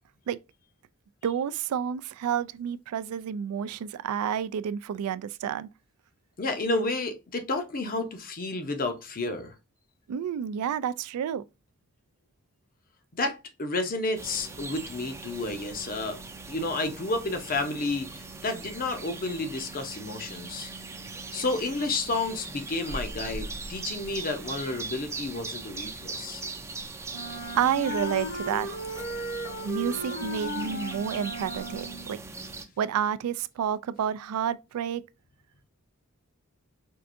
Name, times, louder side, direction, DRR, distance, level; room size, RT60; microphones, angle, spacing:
voice 1, 1.2-5.7 10.1-11.4 27.5-28.7 29.6-32.2 32.8-35.0, right 8 dB, 80° right, 0.3 m, -29 dB
voice 2, 6.4-9.5 13.1-16.2 16.5-20.7 21.3-26.4, left 2 dB, 40° left, 0.7 m, -31 dB
sound 1, 14.2-32.6, right 3 dB, 15° right, 0.4 m, -40 dB
Wind instrument woodwind instrument, 27.1-32.1, equal, 60° left, 1.2 m, -36 dB
4.5 x 2.5 x 2.5 m
head